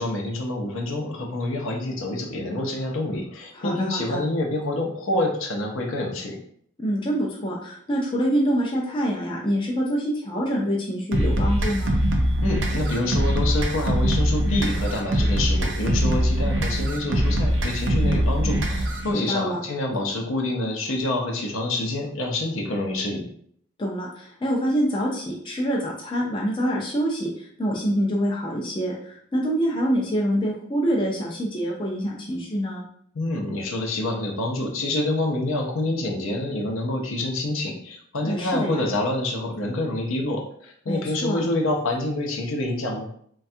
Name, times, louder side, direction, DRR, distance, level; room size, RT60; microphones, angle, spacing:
voice 1, 0.0-6.4 12.4-23.2 33.1-43.1, left 2 dB, 70° left, 1 dB, 0.6 m, -27 dB
voice 2, 3.5-4.2 6.8-12.0 19.1-19.6 23.8-32.9 38.2-38.8 40.9-41.4, equal, 25° left, -2 dB, 0.4 m, -26 dB
sound 1, 11.1-19.1, equal, 55° right, 0.5 m, -22 dB
3.3 x 2.3 x 2.6 m, 0.63 s
head